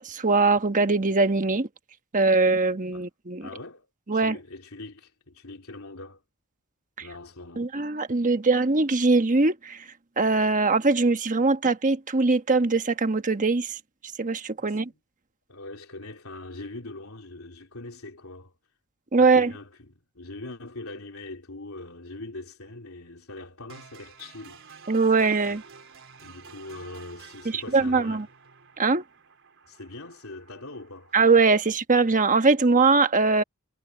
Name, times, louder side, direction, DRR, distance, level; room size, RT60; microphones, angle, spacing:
voice 1, 0.0-1.7 2.1-3.5 4.1-4.4 7.0-7.1 7.6-9.9 10.2-13.8 14.2-14.9 19.1-19.5 24.9-25.6 27.4-28.2 28.8-29.0 31.1-33.4, right 3 dB, 35° right, 1.2 m, -22 dB
voice 2, 3.4-6.2 7.0-7.7 14.6-14.9 15.5-18.6 19.2-24.8 25.5-25.6 26.2-28.3 29.7-31.2, left 2 dB, 75° left, 3.6 m, -42 dB
sound 1, 23.7-31.7, right 5 dB, 65° right, 3.7 m, -50 dB
head